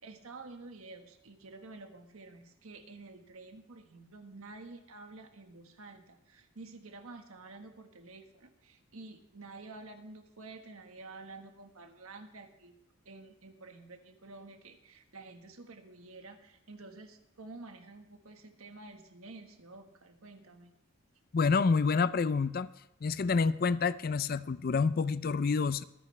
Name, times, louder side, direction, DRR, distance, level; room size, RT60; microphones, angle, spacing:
voice 1, 0.0-12.8 13.0-20.7, right 3 dB, 90° right, 6 dB, 1.5 m, -50 dB
voice 2, 21.3-22.7 23.0-25.8, left 4 dB, 45° left, 16 dB, 0.4 m, -28 dB
23.5 x 9.8 x 3.3 m, 0.82 s
head